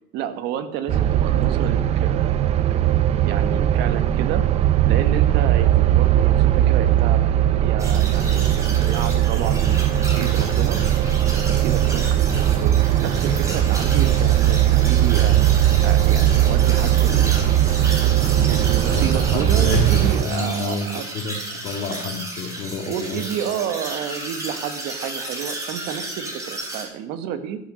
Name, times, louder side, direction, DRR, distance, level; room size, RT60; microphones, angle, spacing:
voice 1, 0.1-2.3 2.7-2.9 3.2-4.4 4.9-7.2 7.6-10.8 11.3-15.4 15.8-17.3 17.7-21.1 22.0-22.1 22.9-27.6, right 9 dB, 55° right, 10 dB, 1.3 m, -30 dB
sound 1, 0.9-20.2, right 12 dB, 30° right, 0.6 m, -19 dB
sound 2, 7.8-26.8, right 2 dB, 15° right, 4.1 m, -33 dB
voice 2, 18.9-20.9 21.1-21.3 21.6-23.2, left 3 dB, 40° left, 5 dB, 2.0 m, -28 dB
12.5 x 10.5 x 6.4 m, 0.77 s
cardioid pair, 165°, 20 cm